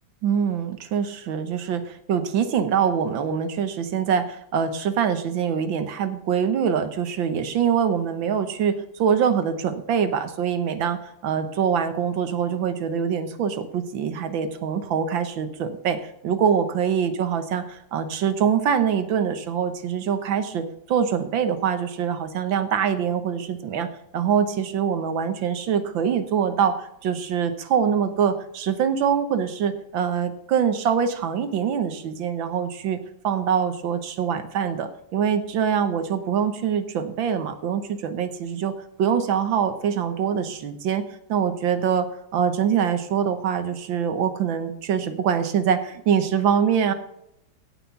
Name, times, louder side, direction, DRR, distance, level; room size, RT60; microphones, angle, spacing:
voice 1, 0.2-23.9 24.1-41.0 41.3-46.9, right 7 dB, 90° right, 10 dB, 1.9 m, -24 dB
16.5 x 6.1 x 5.8 m, 0.80 s
omnidirectional pair, 2.0 m